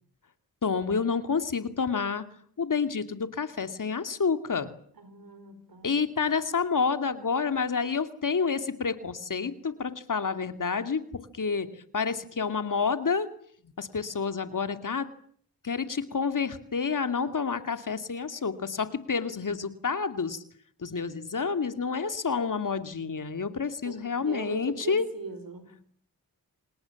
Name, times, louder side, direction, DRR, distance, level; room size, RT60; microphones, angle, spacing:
voice 1, 0.6-2.2 2.6-4.7 5.8-11.0 11.3-11.7 11.9-13.3 13.6-15.1 15.6-20.4 20.8-25.0, left 5 dB, 60° left, 9 dB, 2.5 m, -29 dB
voice 2, 5.0-6.0 23.8-25.7, right 4 dB, 70° right, 11 dB, 4.9 m, -40 dB
28.0 x 27.5 x 7.2 m, 0.63 s
cardioid pair, 65°, 36 cm